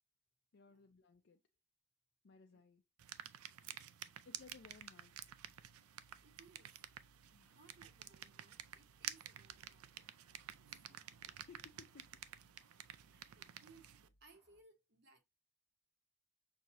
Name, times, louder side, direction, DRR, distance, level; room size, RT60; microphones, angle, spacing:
voice 1, 0.5-1.4 2.2-2.8 3.5-3.8 4.2-5.2 7.3-7.6 11.3-12.2 12.9-13.1, left 4 dB, 55° left, 0.4 m, -61 dB
sound 1, 3.0-14.1, right 11 dB, 85° right, 0.4 m, -52 dB
sound 2, 4.3-14.6, equal, 15° left, 1.2 m, -74 dB
voice 2, 6.2-6.8 7.5-10.1 10.6-11.0 13.1-15.2, right 3 dB, 50° right, 1.2 m, -66 dB
6.1 x 2.6 x 3.0 m
head